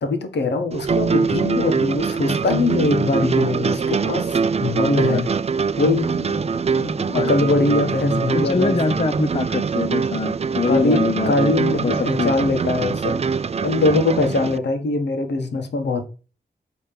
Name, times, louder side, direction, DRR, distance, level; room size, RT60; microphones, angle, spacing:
voice 1, 0.0-5.3 5.8-8.9 10.7-13.2 13.6-16.0, left 3 dB, 80° left, 1.6 m, -22 dB
sound 1, 0.7-14.6, right 5 dB, 35° right, 0.4 m, -23 dB
voice 2, 8.3-11.5 11.8-12.3, left 4 dB, 35° left, 0.7 m, -23 dB
8.7 x 3.5 x 5.8 m
wide cardioid pair, 95°, 18 cm